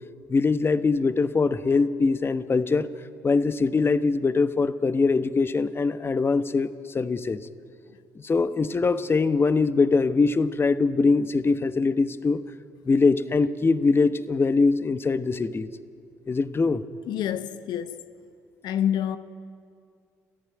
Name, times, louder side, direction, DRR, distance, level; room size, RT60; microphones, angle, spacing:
voice 1, 0.3-2.9 3.2-7.4 8.2-12.4 12.8-15.7 16.3-16.8, left 4 dB, 30° left, 1.1 m, -22 dB
voice 2, 17.1-18.0 18.6-19.2, left 10 dB, 60° left, 0.9 m, -27 dB
30.0 x 14.0 x 9.5 m
hypercardioid pair, 50°, 8 cm